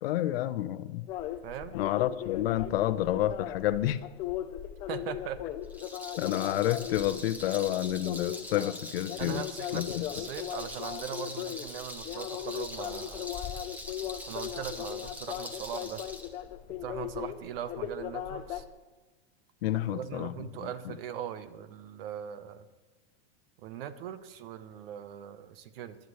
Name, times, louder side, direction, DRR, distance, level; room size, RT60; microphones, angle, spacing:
voice 1, 0.0-1.1 1.7-4.0 6.2-9.4 9.7-10.0 19.6-20.3 20.9-21.0, left 13 dB, 65° left, 14 dB, 0.7 m, -29 dB
sound 1, 1.1-18.6, left 12 dB, 20° left, 0.3 m, -38 dB
voice 2, 1.4-1.8 4.9-5.4 9.2-13.3 14.3-16.0 16.8-18.6 19.9-22.7 23.6-26.0, right 9 dB, 60° right, 12 dB, 1.0 m, -40 dB
Rattle, 5.6-16.3, equal, 5° right, 1.2 m, -43 dB
21.0 x 12.0 x 3.2 m, 1.3 s
supercardioid pair, 145°, 32 cm